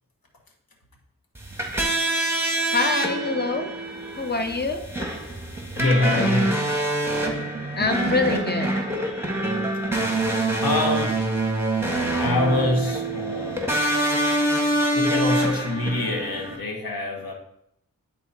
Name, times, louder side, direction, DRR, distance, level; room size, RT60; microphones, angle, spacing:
sound 1, 1.4-16.6, right 1 dB, 5° right, 1.7 m, -25 dB
voice 1, 2.7-3.7 4.1-4.8 7.7-8.7, left 4 dB, 30° left, 6 dB, 1.0 m, -25 dB
voice 2, 5.8-6.6 10.6-11.2 12.2-13.7 14.9-17.3, left 2 dB, 90° left, 1 dB, 1.5 m, -25 dB
9.9 x 4.2 x 4.2 m, 0.74 s
cardioid pair, 45°, 34 cm